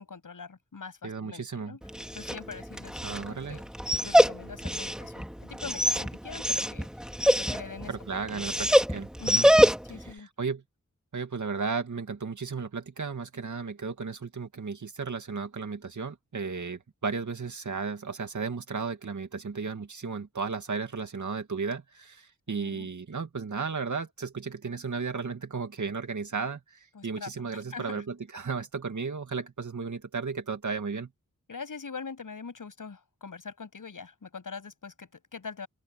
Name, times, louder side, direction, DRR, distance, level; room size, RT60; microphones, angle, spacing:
voice 1, 0.0-1.8 2.1-3.0 3.2-3.6 4.0-6.9 7.2-7.9 8.3-8.7 9.2-9.5 9.9-10.3 22.5-22.9 26.9-28.0 31.5-35.7, left 5 dB, 80° left, 7.7 m, -43 dB
voice 2, 1.0-1.8 3.0-3.6 7.9-9.5 10.4-10.6 11.1-31.1, right 5 dB, 65° right, 2.2 m, -34 dB
Dog, 1.8-10.1, equal, ahead, 1.8 m, -25 dB
open air
wide cardioid pair, 100°, 32 cm